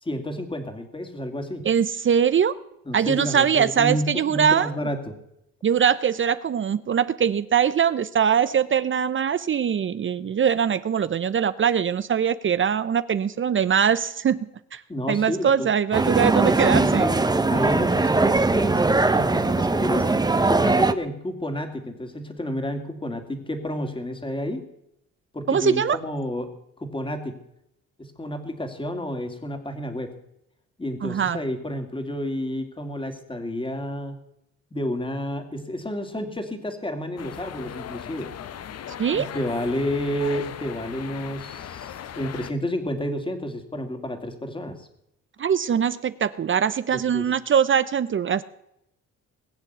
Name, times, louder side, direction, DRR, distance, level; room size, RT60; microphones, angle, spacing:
voice 1, 0.0-1.7 2.9-5.2 14.9-15.7 16.1-20.1 20.5-24.6 25.3-26.5 26.8-27.4 28.0-30.2 30.8-34.2 34.7-38.3 39.1-44.9 46.9-47.3, equal, 15° left, 6 dB, 2.5 m, -30 dB
voice 2, 1.6-2.6 2.9-4.7 5.6-14.8 15.1-17.1 20.0-20.2 25.5-26.0 31.0-31.4 39.0-39.3 45.4-48.4, right 8 dB, 40° right, 14 dB, 0.7 m, -22 dB
sound 1, 15.9-20.9, right 3 dB, 15° right, 0.9 m, -20 dB
sound 2, 37.2-42.5, left 9 dB, 55° left, 0.9 m, -38 dB
20.5 x 7.4 x 8.1 m, 0.80 s
cardioid pair, 90°, 30 cm